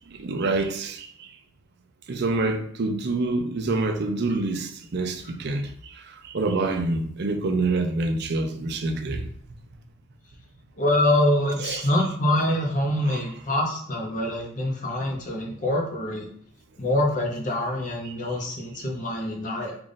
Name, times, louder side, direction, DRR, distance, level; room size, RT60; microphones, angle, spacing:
voice 1, 0.2-1.1 2.1-5.7 6.3-9.3 11.6-11.8 13.1-13.2, right 3 dB, 50° right, 0.5 m, -26 dB
voice 2, 10.8-16.3 16.8-19.8, left 1 dB, 35° left, 0.7 m, -25 dB
3.4 x 2.4 x 3.9 m
head